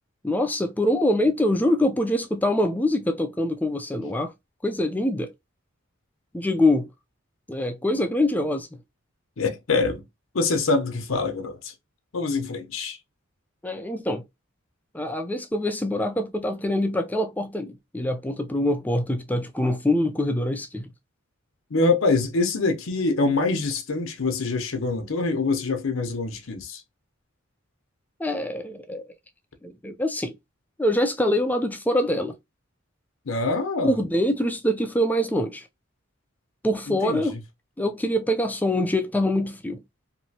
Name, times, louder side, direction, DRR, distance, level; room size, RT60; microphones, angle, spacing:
voice 1, 0.2-4.3 4.6-5.3 6.3-6.9 7.5-8.7 13.6-14.2 14.9-20.9 28.2-29.1 29.6-30.3 30.8-32.3 33.8-35.7 36.6-37.3 37.8-39.8, left 1 dB, 10° left, 0.4 m, -24 dB
voice 2, 9.4-10.0 10.3-11.7 12.1-13.0 21.7-26.8 33.3-34.1 36.9-37.4, left 3 dB, 75° left, 0.7 m, -25 dB
3.0 x 2.6 x 2.7 m
head